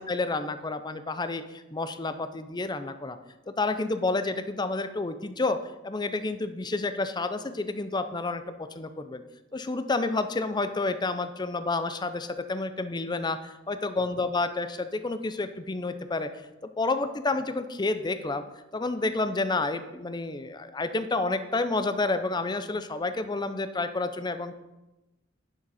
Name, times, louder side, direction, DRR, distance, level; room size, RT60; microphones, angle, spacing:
voice 1, 0.0-3.2 3.5-5.6 5.8-8.4 8.7-9.2 9.5-16.3 16.6-18.4 18.7-24.5, left 3 dB, 20° left, 10 dB, 0.5 m, -29 dB
10.5 x 6.2 x 4.2 m, 1.0 s
head